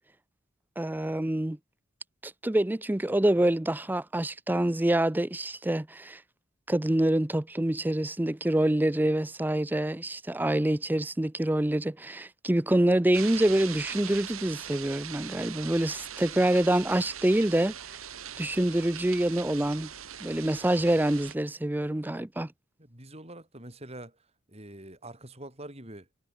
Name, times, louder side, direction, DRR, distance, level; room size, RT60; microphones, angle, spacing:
voice 1, 0.8-1.6 2.2-6.2 6.7-17.7 18.4-19.9 20.2-22.5, right 1 dB, 10° right, 0.4 m, -26 dB
sound 1, 13.1-21.4, right 9 dB, 85° right, 2.8 m, -41 dB
voice 2, 22.8-26.1, right 1 dB, 30° right, 6.0 m, -45 dB
head